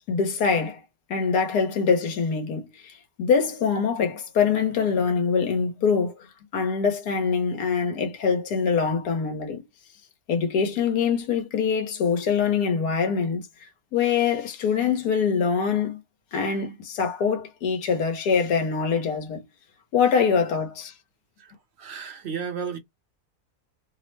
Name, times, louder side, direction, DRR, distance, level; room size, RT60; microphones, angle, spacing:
voice 1, 0.1-0.8 1.1-6.1 6.5-9.6 10.3-16.0 16.3-19.4 19.9-20.9, left 6 dB, 80° left, 1.5 m, -24 dB
voice 2, 21.4-22.8, right 6 dB, 55° right, 0.9 m, -34 dB
3.2 x 2.1 x 3.1 m
omnidirectional pair, 1.7 m